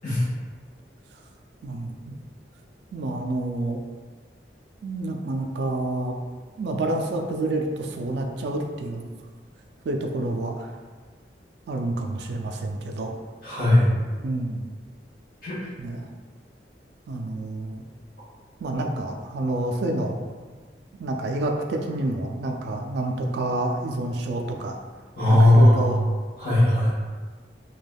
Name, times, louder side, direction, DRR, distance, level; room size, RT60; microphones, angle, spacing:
voice 1, 1.6-2.1 2.9-3.8 4.8-6.2 6.6-9.1 9.9-10.8 11.7-13.2 14.2-14.6 15.8-16.1 17.1-17.8 18.6-20.2 21.0-24.8 25.3-26.0, right 2 dB, 70° right, 3 dB, 0.3 m, -28 dB
voice 2, 13.4-14.0 15.4-15.6 25.2-25.9 26.4-26.9, left 1 dB, 50° left, -12 dB, 1.0 m, -18 dB
3.3 x 2.2 x 2.2 m, 1.5 s
head